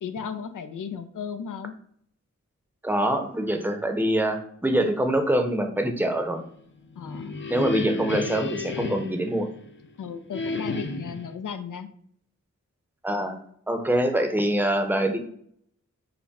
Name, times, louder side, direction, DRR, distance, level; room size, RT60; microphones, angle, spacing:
voice 1, 0.0-1.7 7.0-7.4 7.8-7.9 10.0-11.9, left 7 dB, 90° left, 8 dB, 0.5 m, -35 dB
voice 2, 2.8-6.4 7.5-9.5 13.0-13.4 13.7-15.2, right 1 dB, 5° right, 5 dB, 0.6 m, -24 dB
sound 1, 6.8-9.9 10.3-11.3, left 2 dB, 40° left, 0.5 m, -32 dB
5.7 x 2.1 x 4.1 m, 0.65 s
wide cardioid pair, 70°, 30 cm